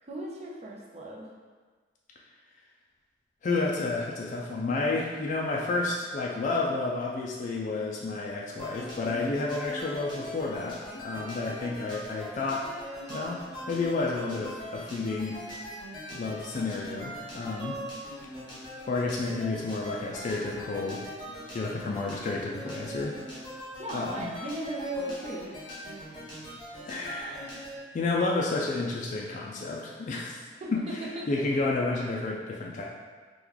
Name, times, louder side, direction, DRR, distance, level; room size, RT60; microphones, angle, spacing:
voice 1, 0.1-1.3 23.8-25.5 30.6-31.3, right 1 dB, 40° right, -3 dB, 0.6 m, -36 dB
voice 2, 3.4-12.7 13.1-15.4 16.1-17.8 18.9-21.0 21.5-23.1 23.9-24.3 26.8-27.5 27.9-32.8, left 3 dB, 45° left, -3 dB, 0.3 m, -31 dB
sound 1, 8.6-27.8, equal, 25° left, 1.0 m, -41 dB
3.0 x 2.2 x 3.7 m, 1.5 s
head